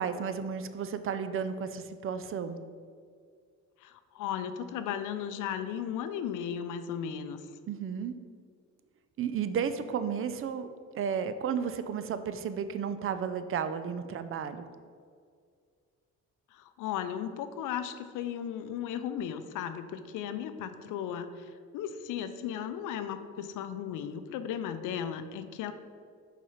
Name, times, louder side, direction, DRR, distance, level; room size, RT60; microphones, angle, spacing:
voice 1, 0.0-2.6 7.7-8.1 9.2-10.7 10.9-14.7, right 7 dB, 45° right, 11 dB, 0.5 m, -33 dB
voice 2, 3.8-7.4 16.5-25.7, left 9 dB, 90° left, 10 dB, 0.5 m, -36 dB
5.5 x 4.2 x 5.0 m, 2.1 s
cardioid pair, 90°, 30 cm